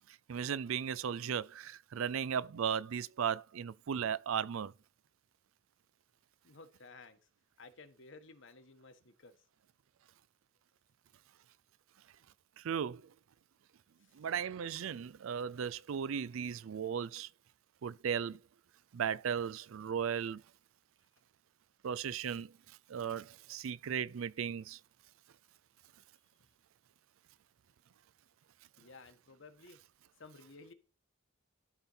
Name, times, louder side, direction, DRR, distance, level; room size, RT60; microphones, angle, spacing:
voice 1, 0.1-4.7 12.6-13.1 14.1-17.3 17.8-18.4 18.9-20.4 21.8-24.8, right 7 dB, 75° right, 0.4 m, -36 dB
voice 2, 6.4-7.2 7.6-9.4 28.8-29.8 30.2-30.7, left 3 dB, 60° left, 1.3 m, -55 dB
12.5 x 4.4 x 5.6 m
head